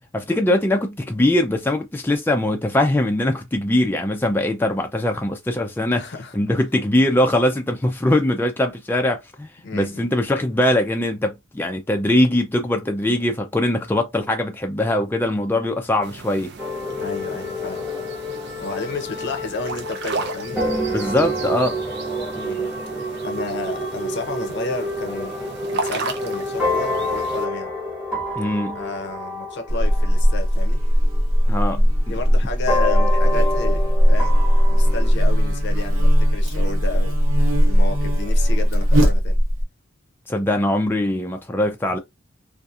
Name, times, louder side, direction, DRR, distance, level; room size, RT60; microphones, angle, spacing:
voice 1, 0.1-6.0 6.3-16.5 20.9-21.8 28.4-28.8 31.5-31.9 40.3-42.0, left 1 dB, 10° left, 0.3 m, -21 dB
voice 2, 5.9-6.4 9.6-10.1 17.0-18.1 18.6-20.8 22.3-22.7 23.2-27.7 28.7-30.8 32.1-34.4 34.7-37.2 37.6-39.4, left 3 dB, 60° left, 0.6 m, -32 dB
sound 1, 16.0-27.5, right 3 dB, 55° right, 0.5 m, -35 dB
sound 2, 16.6-31.7 32.7-35.1, left 1 dB, 5° right, 1.2 m, -28 dB
Buzz, 29.7-39.6, equal, 90° right, 1.0 m, -18 dB
2.7 x 2.4 x 2.3 m
head